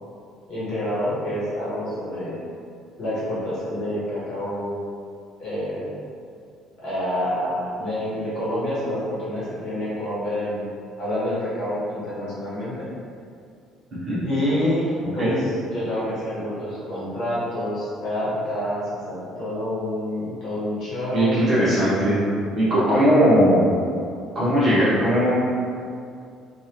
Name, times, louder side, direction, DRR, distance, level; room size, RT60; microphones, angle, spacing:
voice 1, 0.5-2.4 3.0-4.8 5.4-5.9 6.8-10.7 11.0-12.9 14.2-21.7 22.7-23.0 24.4-24.6, left 1 dB, 50° left, -9 dB, 1.2 m, -27 dB
voice 2, 21.1-22.2 22.5-23.6 24.3-25.3, equal, 30° right, -11 dB, 1.1 m, -19 dB
3.2 x 2.5 x 2.9 m, 2.4 s
cardioid pair, 170°, 0 cm